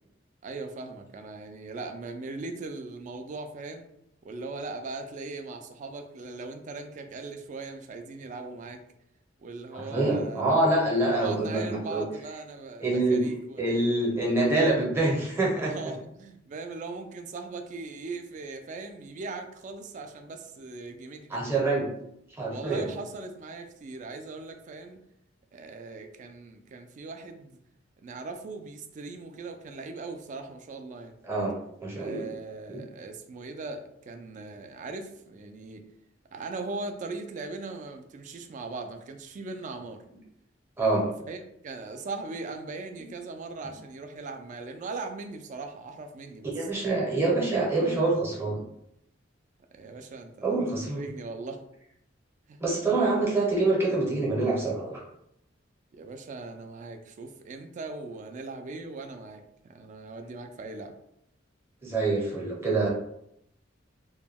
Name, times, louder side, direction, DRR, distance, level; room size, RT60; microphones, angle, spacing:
voice 1, 0.4-3.9 4.2-8.8 9.4-10.4 11.0-13.6 15.6-21.6 22.5-25.0 25.5-27.6 28.0-31.1 32.0-35.8 36.3-40.0 41.3-46.7 49.7-50.6 50.9-51.6 52.5-52.6 55.9-60.9, right 3 dB, 40° right, 6 dB, 0.3 m, -39 dB
voice 2, 9.7-12.0 12.8-13.2 13.6-15.7 21.3-21.9 22.4-22.9 31.2-31.5 31.8-32.3 32.7-32.8 40.8-41.0 46.5-48.6 50.4-51.0 52.6-55.0 61.8-62.9, right 2 dB, 15° right, -4 dB, 0.7 m, -25 dB
2.2 x 2.2 x 3.3 m, 0.76 s
head